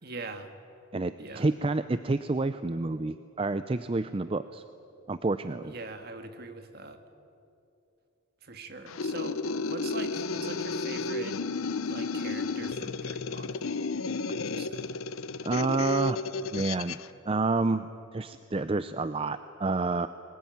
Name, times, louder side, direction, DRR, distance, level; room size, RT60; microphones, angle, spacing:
voice 1, 0.0-0.5 1.2-1.5 5.6-7.0 8.4-11.4 11.9-13.7 14.5-14.9, right 3 dB, 50° right, 7 dB, 1.8 m, -42 dB
voice 2, 0.9-4.6 5.1-5.7 15.4-16.2 16.5-17.0 17.3-17.9 18.1-20.1, right 3 dB, 25° right, 12 dB, 0.4 m, -29 dB
sound 1, 8.9-17.1, left 3 dB, 85° left, 0.7 m, -32 dB
22.5 x 20.0 x 9.3 m, 2.7 s
head